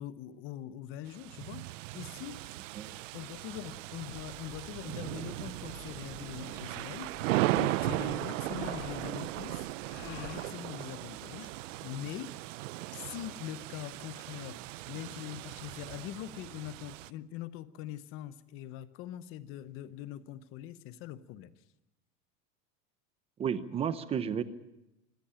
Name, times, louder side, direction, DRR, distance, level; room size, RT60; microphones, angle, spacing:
voice 1, 0.0-2.4 3.1-7.1 7.5-9.7 10.0-11.5 11.8-12.4 12.9-14.6 14.9-21.5, left 12 dB, 35° left, 15 dB, 0.9 m, -43 dB
sound 1, 1.1-17.1, right 17 dB, 85° right, 0.7 m, -37 dB
sound 2, 4.1-10.5, left 13 dB, 75° left, 1.8 m, -51 dB
voice 2, 23.4-24.4, right 8 dB, 15° right, 13 dB, 0.8 m, -32 dB
25.5 x 14.5 x 8.9 m, 0.91 s
supercardioid pair, 170°, 37 cm